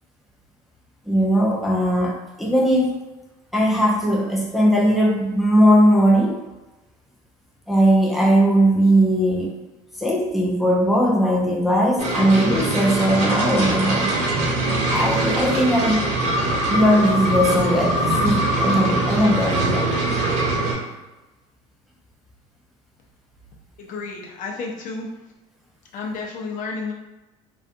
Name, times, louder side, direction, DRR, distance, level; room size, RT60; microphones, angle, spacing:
voice 1, 1.1-3.1 3.5-6.4 7.7-9.6 10.0-14.1 14.9-16.0 16.7-19.9, equal, ahead, -2 dB, 0.5 m, -19 dB
sound 1, 12.0-20.7, right 2 dB, 50° right, 1.0 m, -22 dB
voice 2, 23.8-25.1 25.9-26.9, left 4 dB, 55° left, 0 dB, 0.6 m, -31 dB
2.5 x 2.3 x 2.5 m, 1.1 s
supercardioid pair, 90°, 16 cm